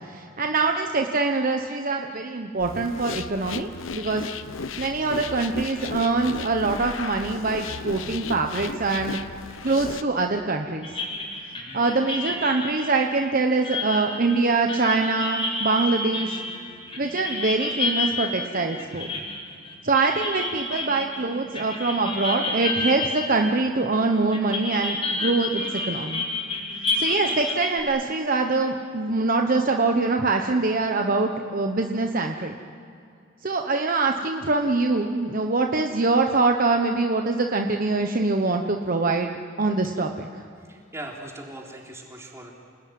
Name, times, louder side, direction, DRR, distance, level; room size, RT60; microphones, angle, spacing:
voice 1, 0.1-4.2 4.8-9.2 9.6-10.9 11.7-16.4 17.0-19.1 19.8-26.3 26.9-32.6 33.4-40.3, right 3 dB, 45° right, 3 dB, 1.1 m, -24 dB
sound 1, 2.6-10.0, left 4 dB, 80° left, 0.9 m, -35 dB
sound 2, 10.8-24.0 24.3-27.8, left 3 dB, 25° left, 4.9 m, -30 dB
voice 2, 40.5-42.5, right 1 dB, 15° right, -1 dB, 3.7 m, -40 dB
28.5 x 19.0 x 9.4 m, 2.4 s
head